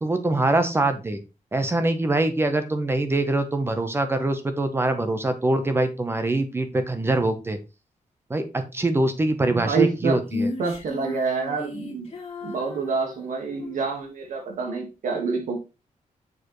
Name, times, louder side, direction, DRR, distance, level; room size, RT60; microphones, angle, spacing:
voice 1, 0.0-1.2 1.5-7.6 8.3-10.5, right 2 dB, 20° right, 0.8 m, -24 dB
voice 2, 9.5-10.2 10.6-12.1 12.4-15.6, right 5 dB, 80° right, 1.6 m, -27 dB
Female singing, 10.3-13.8, left 3 dB, 50° left, 1.7 m, -34 dB
6.6 x 5.0 x 3.1 m
wide cardioid pair, 160°, 13 cm